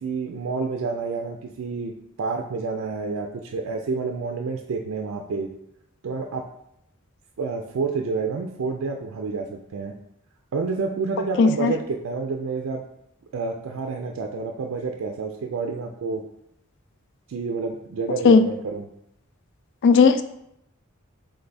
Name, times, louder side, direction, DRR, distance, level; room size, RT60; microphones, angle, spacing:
voice 1, 0.0-5.5 6.0-6.4 7.4-9.9 10.5-12.8 13.3-16.2 17.3-18.9, right 4 dB, 75° right, 2 dB, 0.4 m, -29 dB
voice 2, 11.4-11.7 18.2-18.5 19.8-20.2, left 4 dB, 55° left, 10 dB, 0.3 m, -15 dB
3.8 x 3.4 x 4.0 m, 0.78 s
head